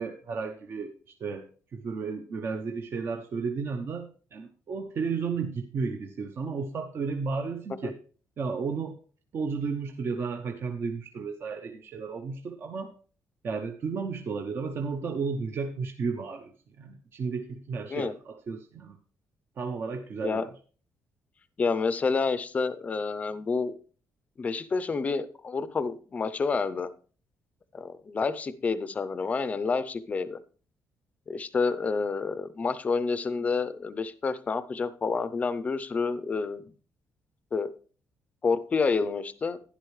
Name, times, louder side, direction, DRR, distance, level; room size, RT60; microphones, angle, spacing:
voice 1, 0.0-1.4 1.7-8.0 8.4-9.0 9.3-12.9 13.4-19.0 19.6-20.5, right 5 dB, 45° right, 5 dB, 0.8 m, -33 dB
voice 2, 21.6-23.7 24.4-26.9 27.7-30.4 31.3-36.6 37.5-37.7 38.4-39.6, left 4 dB, 25° left, 14 dB, 0.6 m, -29 dB
11.5 x 10.5 x 3.2 m, 0.39 s
cardioid pair, 160°, 6 cm